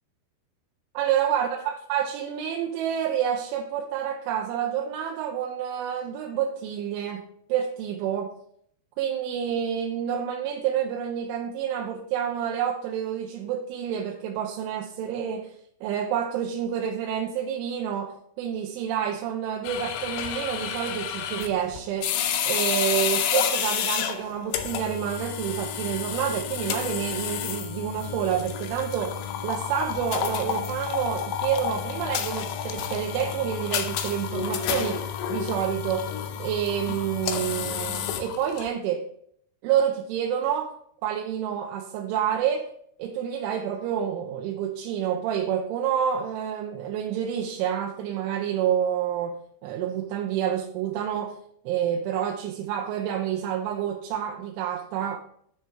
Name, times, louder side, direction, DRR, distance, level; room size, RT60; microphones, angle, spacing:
voice 1, 0.9-8.3 9.0-15.5 15.8-22.2 22.5-29.2 29.4-36.1 36.4-39.1 39.6-40.8 41.0-42.7 43.0-51.4 51.7-55.2, right 9 dB, 85° right, 1 dB, 3.0 m, -28 dB
sound 1, 19.6-38.7, left 9 dB, 90° left, 2.4 m, -30 dB
9.1 x 3.2 x 4.7 m, 0.67 s
omnidirectional pair, 5.3 m